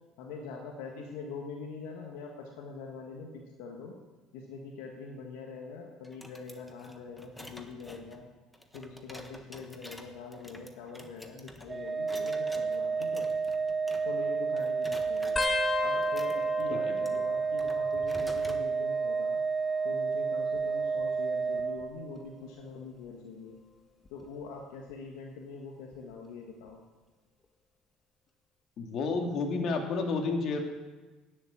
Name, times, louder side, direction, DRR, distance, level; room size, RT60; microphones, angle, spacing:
voice 1, 0.2-3.9 4.3-8.2 8.7-13.3 14.0-15.4 15.8-19.4 19.8-23.6 24.1-26.8, left 4 dB, 80° left, 1 dB, 1.5 m, -44 dB
sound 1, 6.0-14.3 14.6-15.6 16.0-18.7, left 1 dB, 5° left, 1.4 m, -50 dB
Organ, 11.7-22.4, right 5 dB, 30° right, 0.5 m, -31 dB
sound 2, 15.4-18.5 18.8-19.4 20.4-21.9 22.5-22.8 24.1-24.4 25.9-26.0, left 4 dB, 25° left, 1.3 m, -37 dB
voice 2, 28.8-30.6, left 3 dB, 55° left, 3 dB, 2.1 m, -31 dB
10.0 x 7.4 x 8.4 m, 1.3 s
hypercardioid pair, 75°, 0 cm